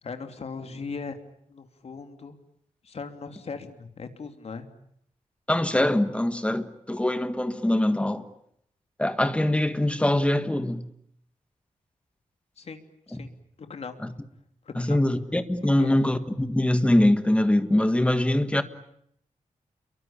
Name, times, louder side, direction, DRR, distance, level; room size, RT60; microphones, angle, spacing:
voice 1, 0.0-1.2 1.5-2.4 2.8-4.7 12.6-12.8 13.1-13.3 13.6-14.0 14.6-15.0 15.8-15.9, left 5 dB, 55° left, 3.0 m, -38 dB
voice 2, 5.5-8.3 9.0-10.9 13.1-13.2 14.0-14.1 14.8-18.6, left 1 dB, 10° left, 1.7 m, -23 dB
29.5 x 23.5 x 8.6 m
wide cardioid pair, 155°, 13 cm